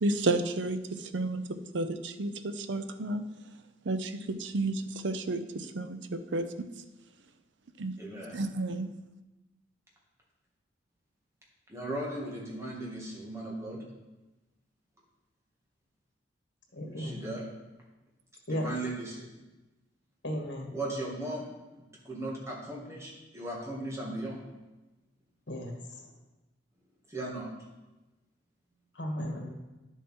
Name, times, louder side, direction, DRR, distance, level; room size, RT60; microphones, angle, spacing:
voice 1, 0.0-3.3 3.8-6.7 7.8-7.9 8.3-8.9, right 2 dB, 85° right, 10 dB, 0.6 m, -32 dB
voice 2, 8.0-8.3 11.7-13.8 17.0-17.4 18.5-19.3 20.7-21.4 22.0-24.4 27.1-27.5, right 1 dB, 15° right, -3 dB, 2.1 m, -37 dB
voice 3, 16.7-17.2 18.5-18.7 20.2-20.7 25.5-26.1 28.9-29.5, equal, 80° left, 2 dB, 1.8 m, -35 dB
10.0 x 7.0 x 4.4 m, 1.1 s
head